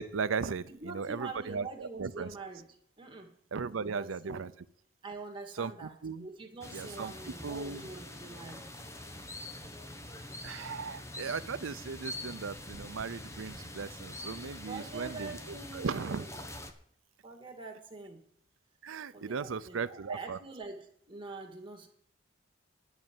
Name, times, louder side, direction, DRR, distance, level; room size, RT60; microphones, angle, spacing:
voice 1, 0.0-2.3 3.5-4.5 5.5-6.3 6.7-7.9 10.4-16.2 18.8-20.4, right 5 dB, 90° right, 13 dB, 0.6 m, -37 dB
voice 2, 0.6-2.6 3.0-3.3 3.7-4.4 5.0-8.6 14.7-16.4 17.2-18.2 19.1-21.9, right 3 dB, 25° right, 1 dB, 2.3 m, -44 dB
sound 1, 6.6-16.7, left 1 dB, 15° left, 1.1 m, -45 dB
11.0 x 6.6 x 9.0 m, 0.67 s
head